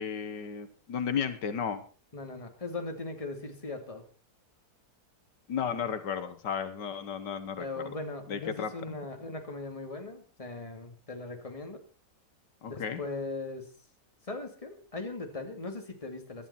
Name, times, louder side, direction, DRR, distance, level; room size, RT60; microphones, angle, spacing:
voice 1, 0.0-1.8 5.5-7.9 8.3-9.0 12.6-13.0, left 7 dB, 90° left, 11 dB, 1.9 m, -34 dB
voice 2, 2.1-4.0 7.6-11.8 12.7-13.7 14.2-16.5, left 3 dB, 20° left, 5 dB, 2.3 m, -39 dB
18.0 x 12.0 x 4.3 m, 0.36 s
omnidirectional pair, 1.8 m